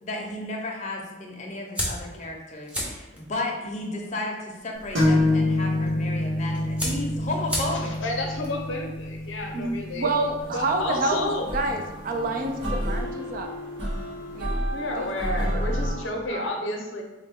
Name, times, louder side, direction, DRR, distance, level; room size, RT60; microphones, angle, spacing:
voice 1, 0.0-7.9, left 2 dB, 35° left, 0 dB, 0.6 m, -33 dB
sound 1, 1.7-10.2, equal, 5° right, 0.6 m, -37 dB
sound 2, 4.9-12.4, left 1 dB, 90° right, 1.3 m, -27 dB
voice 2, 7.7-10.1 10.5-11.5 14.7-17.0, left 1 dB, 80° left, 1 dB, 0.6 m, -31 dB
voice 3, 9.5-13.5 14.3-14.6 15.0-15.1 15.3-16.5, right 2 dB, 45° right, 4 dB, 0.4 m, -29 dB
sound 3, 10.4-15.9, equal, 65° right, 1.3 m, -31 dB
3.8 x 2.1 x 3.5 m, 1.1 s
head